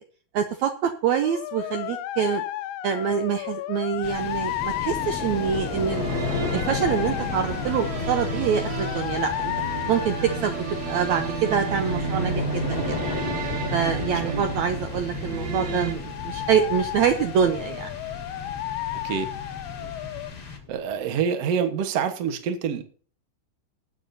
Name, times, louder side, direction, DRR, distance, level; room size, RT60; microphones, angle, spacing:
voice 1, 0.3-2.4 2.8-6.2 6.5-9.5 9.9-13.0 13.7-17.9 19.8-19.9, right 7 dB, 85° right, 7 dB, 1.6 m, -25 dB
sound 1, 1.2-11.0 15.9-20.3, left 14 dB, 80° left, 2.2 m, -33 dB
sound 2, 4.0-21.0, left 4 dB, 35° left, 1.6 m, -34 dB
sound 3, 5.9-15.9, right 3 dB, 40° right, 1.8 m, -31 dB
voice 2, 20.7-22.8, right 7 dB, 60° right, 7 dB, 1.8 m, -26 dB
21.0 x 8.7 x 2.7 m, 0.42 s
omnidirectional pair, 4.3 m